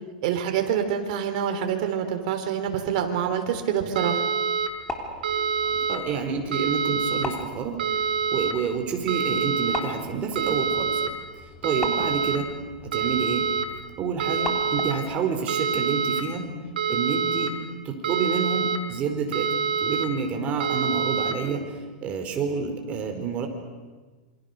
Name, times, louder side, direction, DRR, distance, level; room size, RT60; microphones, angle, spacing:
voice 1, 0.2-4.2, right 8 dB, 55° right, 5 dB, 3.8 m, -26 dB
sound 1, 4.0-4.7 5.2-6.0 6.5-7.2 7.8-8.5 9.1-9.8 10.4-11.1 11.6-12.4 12.9-13.7 14.2-14.9 15.5-16.2 16.8-17.5 18.0-18.8 19.3-20.1 20.6-21.3, right 6 dB, 85° right, 3.9 m, -26 dB
sound 2, 4.6-15.1, left 2 dB, 15° left, 3.3 m, -39 dB
voice 2, 5.9-7.8 8.3-11.0 11.3-12.5 12.8-13.5 14.0-16.4 16.9-17.6 17.8-19.5 19.8-23.5, right 6 dB, 30° right, 4 dB, 4.5 m, -28 dB
27.5 x 25.0 x 6.8 m, 1.3 s
supercardioid pair, 140°, 5 cm